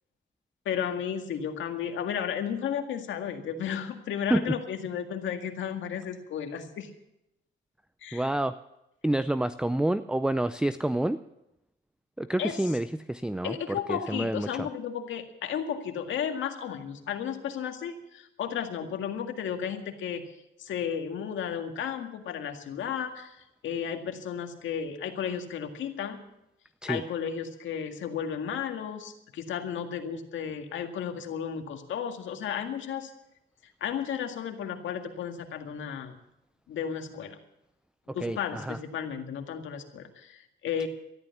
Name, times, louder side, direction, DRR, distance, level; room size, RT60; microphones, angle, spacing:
voice 1, 0.7-6.9 8.0-8.3 12.4-12.6 13.4-20.2 20.6-26.2 26.9-33.1 33.8-36.2 36.7-37.4 38.1-40.9, left 8 dB, 75° left, 5 dB, 2.0 m, -33 dB
voice 2, 8.1-8.5 9.0-11.2 12.2-14.7 26.8-27.0 38.1-38.8, right 1 dB, 5° right, 12 dB, 0.5 m, -28 dB
13.5 x 12.0 x 7.2 m, 0.86 s
cardioid pair, 90°, 20 cm